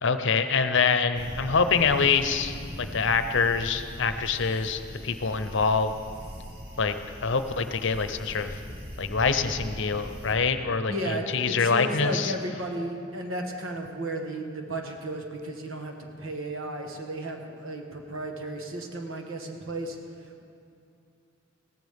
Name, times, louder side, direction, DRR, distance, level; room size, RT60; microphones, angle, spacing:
voice 1, 0.0-5.9 6.8-7.0 7.2-8.5 9.0-12.3, left 5 dB, 65° left, 9 dB, 0.7 m, -25 dB
sound 1, 1.1-10.3, equal, 55° right, 2.6 m, -41 dB
voice 2, 10.9-20.0, right 1 dB, 90° right, 3 dB, 1.4 m, -34 dB
17.0 x 14.5 x 3.6 m, 2.6 s
head